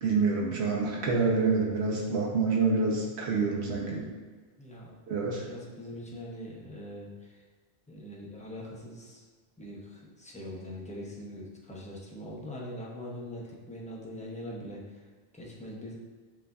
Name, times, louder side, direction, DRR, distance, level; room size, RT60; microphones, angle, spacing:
voice 1, 0.0-4.0 5.1-5.5, right 4 dB, 80° right, -3 dB, 1.1 m, -27 dB
voice 2, 4.6-7.3 7.9-9.2 9.6-15.0 15.3-15.9, left 1 dB, 10° left, -4 dB, 0.6 m, -42 dB
7.8 x 2.6 x 2.3 m, 1.4 s
omnidirectional pair, 1.1 m